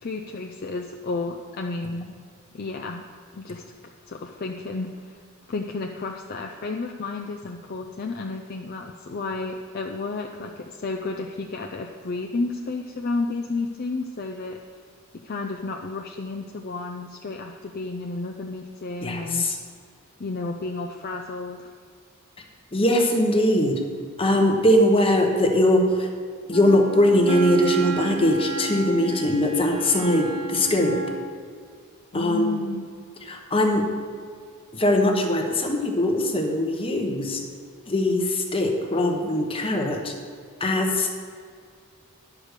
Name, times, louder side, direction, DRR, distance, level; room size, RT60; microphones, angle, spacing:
voice 1, 0.0-2.2 2.5-3.0 3.3-3.6 4.1-5.2 5.5-14.6 15.2-19.5 20.2-21.7 32.1-32.9, left 3 dB, 45° left, 2 dB, 0.5 m, -32 dB
voice 2, 19.0-19.6 22.7-23.8 24.2-26.1 26.5-31.0 32.1-32.6 33.3-33.8 34.7-37.4 37.9-40.1 40.6-41.1, left 1 dB, 25° left, 2 dB, 1.0 m, -21 dB
Wind instrument woodwind instrument, 26.5-31.3, right 3 dB, 80° right, 1.1 m, -32 dB
10.5 x 4.8 x 6.6 m, 2.1 s
head